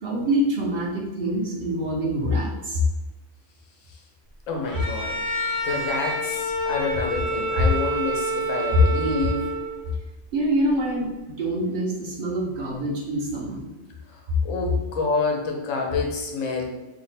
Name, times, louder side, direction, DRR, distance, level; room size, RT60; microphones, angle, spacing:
voice 1, 0.0-2.8 10.3-13.6, right 1 dB, 55° right, -3 dB, 0.8 m, -25 dB
voice 2, 4.5-5.1 5.6-9.5 14.1-16.6, left 3 dB, 90° left, 1 dB, 1.1 m, -28 dB
Bowed string instrument, 4.6-9.9, right 1 dB, 25° left, 0.5 m, -28 dB
2.8 x 2.1 x 4.0 m, 1.1 s
omnidirectional pair, 1.3 m